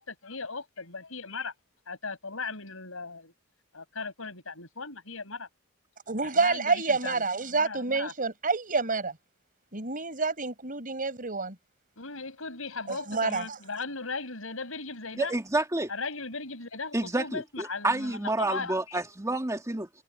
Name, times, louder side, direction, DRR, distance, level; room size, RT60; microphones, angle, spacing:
voice 1, 0.0-1.5 1.9-3.3 3.7-5.5 6.2-7.2 7.5-8.1 12.0-15.3 15.9-19.0, left 4 dB, 80° left, 5.4 m, -37 dB
voice 2, 6.1-9.2 9.7-11.6 12.9-13.6, right 4 dB, 40° right, 6.1 m, -28 dB
voice 3, 15.2-15.9 16.9-19.9, right 2 dB, 15° right, 2.1 m, -29 dB
head